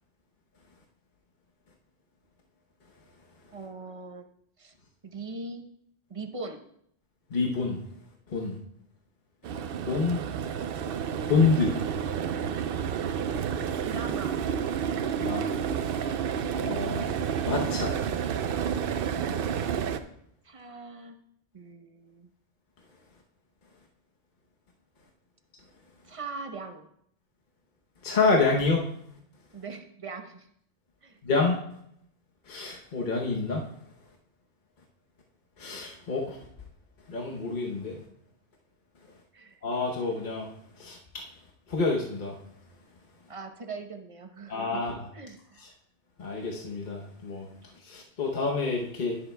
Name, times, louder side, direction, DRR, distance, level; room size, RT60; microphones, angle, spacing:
voice 1, 3.5-4.3 4.6-4.7 5.0-5.7 6.1-6.6 13.8-14.4 20.4-21.2 21.5-22.3 26.0-26.9 29.5-30.5 31.0-31.2 39.3-39.6 43.3-44.9 45.1-45.6, right 3 dB, 30° right, 5 dB, 0.8 m, -40 dB
voice 2, 7.3-7.8 8.3-8.6 9.8-10.2 11.3-11.7 15.2-15.5 16.6-17.1 17.5-17.9 28.0-28.9 31.2-31.6 32.5-33.6 35.6-36.4 37.1-38.0 39.6-40.5 40.8-41.2 41.7-42.4 44.5-45.0 45.6-45.7 46.2-47.5 47.8-49.2, left 4 dB, 45° left, -1 dB, 1.0 m, -27 dB
sound 1, 9.4-20.0, right 7 dB, 60° right, 0.7 m, -30 dB
18.5 x 7.0 x 2.2 m, 0.71 s
omnidirectional pair, 1.2 m